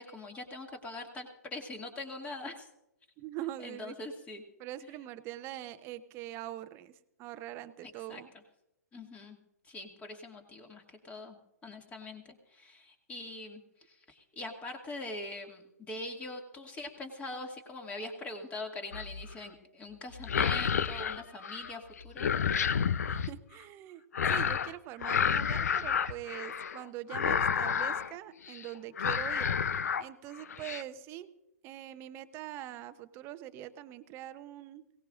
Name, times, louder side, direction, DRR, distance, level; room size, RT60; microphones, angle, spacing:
voice 1, 0.0-2.7 3.6-4.4 4.8-4.9 7.8-8.2 8.9-9.4 9.6-11.4 11.6-13.6 13.9-22.3, left 2 dB, 15° left, 3 dB, 2.3 m, -43 dB
voice 2, 3.2-3.9 4.6-6.9 7.2-8.3 23.1-29.5 30.0-31.3 31.6-34.8, right 13 dB, 25° right, 12 dB, 0.9 m, -43 dB
sound 1, 18.9-19.3 20.1-21.7 22.0-23.3 24.1-24.7 25.0-26.8 27.1-28.1 28.5-28.7 29.0-30.0 30.4-30.8, left 7 dB, 65° left, 0.7 m, -30 dB
22.0 x 18.0 x 2.6 m, 0.86 s
figure-of-eight pair, 125°, 9 cm